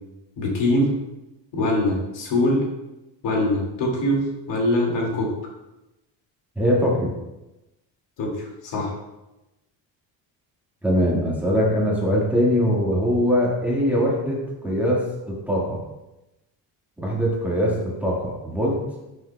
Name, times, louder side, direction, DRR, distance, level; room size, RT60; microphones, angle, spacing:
voice 1, 0.4-0.9 1.5-2.6 3.2-5.3 8.2-8.9, left 1 dB, 65° left, -1 dB, 2.2 m, -23 dB
voice 2, 6.5-7.1 10.8-15.0 15.5-15.8 17.0-18.8, equal, 5° right, -5 dB, 1.6 m, -22 dB
10.5 x 6.5 x 2.2 m, 0.98 s
cardioid pair, 150°, 45 cm